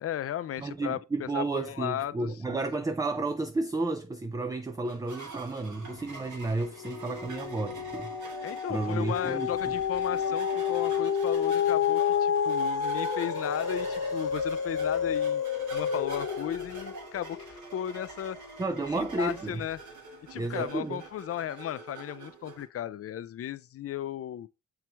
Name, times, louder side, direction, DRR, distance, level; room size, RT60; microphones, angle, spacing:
voice 1, 0.0-2.6 8.4-18.4 18.9-19.8 20.3-24.5, left 11 dB, 50° left, 0.5 m, -35 dB
voice 2, 0.6-8.1 8.7-9.7 18.6-19.6 20.3-21.0, right 3 dB, 10° right, 0.4 m, -32 dB
sound 1, 4.8-22.6, right 3 dB, 65° right, 2.0 m, -46 dB
sound 2, 5.7-6.3 6.6-19.1 19.6-19.7, left 7 dB, 75° left, 1.0 m, -30 dB
7.4 x 4.6 x 3.4 m
cardioid pair, 130°, 32 cm